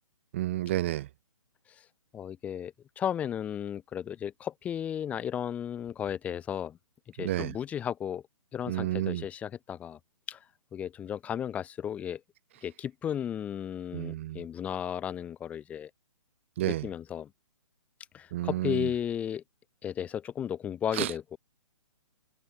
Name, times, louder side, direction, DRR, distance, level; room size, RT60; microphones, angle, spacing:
voice 1, 0.3-1.1 7.2-7.6 8.7-9.2 13.9-14.4 16.6-16.9 18.3-18.9 20.9-21.1, right 14 dB, 25° right, 0.6 m, -31 dB
voice 2, 2.1-6.8 7.2-8.2 8.5-10.0 10.3-10.4 10.7-12.2 12.6-15.9 16.6-17.3 18.1-19.4 19.8-21.4, left 9 dB, 10° left, 1.1 m, -34 dB
hypercardioid pair, 165°, 17 cm